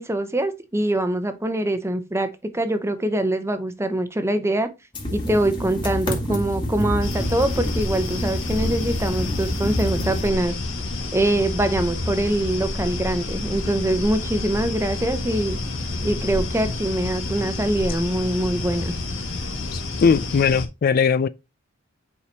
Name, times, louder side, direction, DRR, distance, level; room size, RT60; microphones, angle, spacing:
voice 1, 0.0-4.7 5.1-10.5 11.1-15.6 16.0-18.9, right 1 dB, 15° right, 0.8 m, -24 dB
sound 1, 4.9-10.3, left 1 dB, 25° left, 2.0 m, -28 dB
sound 2, 7.0-20.7, left 2 dB, 75° left, 1.8 m, -29 dB
voice 2, 19.7-21.3, left 6 dB, 45° left, 0.3 m, -19 dB
8.3 x 4.8 x 2.8 m
head